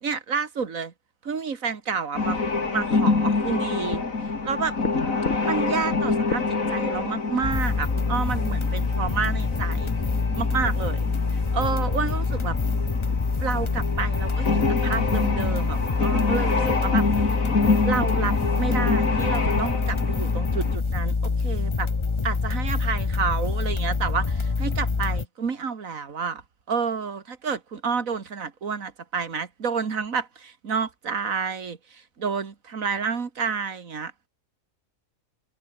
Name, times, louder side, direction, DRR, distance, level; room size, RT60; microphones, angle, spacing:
voice 1, 0.0-0.9 1.2-2.4 2.7-4.0 4.4-4.8 5.4-9.9 10.3-11.1 11.5-12.6 13.4-17.1 17.8-21.9 22.2-26.4 26.7-34.1, right 5 dB, 70° right, 2.3 m, -29 dB
sound 1, 2.1-20.8, left 4 dB, 65° left, 3.4 m, -27 dB
sound 2, 7.4-25.3, left 4 dB, 25° left, 0.8 m, -26 dB
omnidirectional pair, 1.5 m